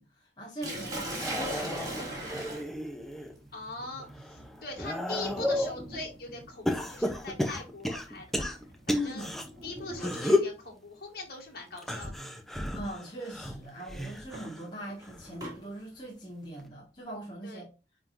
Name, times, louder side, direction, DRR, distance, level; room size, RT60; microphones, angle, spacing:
voice 1, 0.0-2.5 8.8-9.4 12.7-17.7, equal, 25° left, 1.9 m, -40 dB
Sink (filling or washing), 0.6-10.6 11.7-12.0 12.5-12.6 14.1-15.6, right 1 dB, 20° right, 2.3 m, -41 dB
sound 1, 1.0-3.3 3.8-5.8 6.7-9.4 9.9-10.6 11.8-14.7 15.0-15.4 16.6-16.7, left 1 dB, ahead, 0.8 m, -32 dB
voice 2, 3.5-8.5 8.9-9.3 9.6-12.1 17.4-17.6, left 2 dB, 55° left, 2.2 m, -41 dB
9.4 x 3.8 x 2.6 m
head